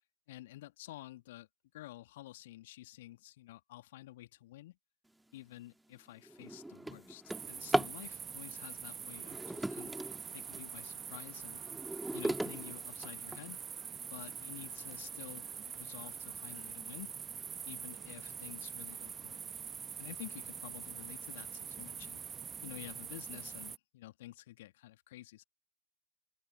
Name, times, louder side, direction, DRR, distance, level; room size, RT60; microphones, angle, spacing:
voice 1, 0.3-1.5 1.7-4.8 5.3-10.0 10.3-11.6 12.1-13.6 14.0-17.1 17.6-19.7 20.0-22.2 22.6-25.4, left 16 dB, 55° left, 2.4 m, -51 dB
Drawer open or close, 5.4-5.6 6.1-8.0 9.1-10.7 11.2-13.7 14.3-14.4 14.9-15.0 15.4-15.7, right 1 dB, 5° right, 2.3 m, -38 dB
sound 1, 7.3-23.8, right 7 dB, 20° right, 1.2 m, -45 dB
open air
figure-of-eight pair, 90°, 0 cm